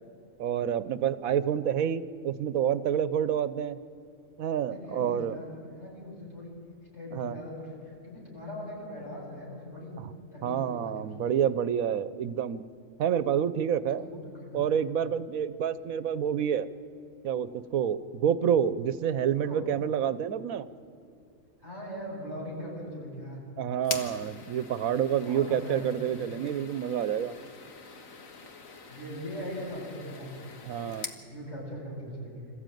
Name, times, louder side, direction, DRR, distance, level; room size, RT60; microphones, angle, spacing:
voice 1, 0.4-3.8 4.4-5.4 7.1-7.4 10.4-12.6 13.0-14.1 14.5-16.7 17.2-20.7 23.6-27.3 30.6-31.1, right 8 dB, 80° right, 14 dB, 1.1 m, -28 dB
voice 2, 4.6-6.5 6.9-10.0 10.3-11.2 13.9-14.7 19.4-19.6 21.6-23.4 25.2-26.3 28.9-30.3 31.3-32.5, equal, 55° left, -4 dB, 7.6 m, -40 dB
sound 1, 23.8-31.2, left 4 dB, 70° left, 1.9 m, -43 dB
26.5 x 14.5 x 9.2 m, 2.6 s
omnidirectional pair, 1.5 m